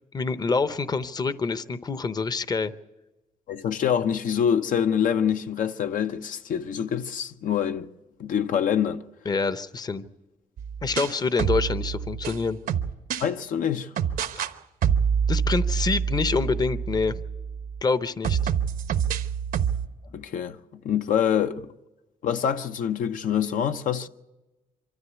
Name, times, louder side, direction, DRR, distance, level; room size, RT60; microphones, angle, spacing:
voice 1, 0.1-2.7 9.2-10.0 10.8-12.6 15.3-17.2 17.8-18.5, left 4 dB, 25° left, 0.7 m, -26 dB
voice 2, 3.5-7.9 8.2-9.0 13.2-13.9 20.1-20.6 20.8-21.7 22.2-24.1, left 8 dB, 65° left, 0.7 m, -25 dB
sound 1, 10.6-13.3 14.0-14.5 14.8-17.8 18.2-19.9, right 7 dB, 75° right, 1.1 m, -26 dB
25.0 x 13.0 x 8.2 m
cardioid pair, 120°, 15 cm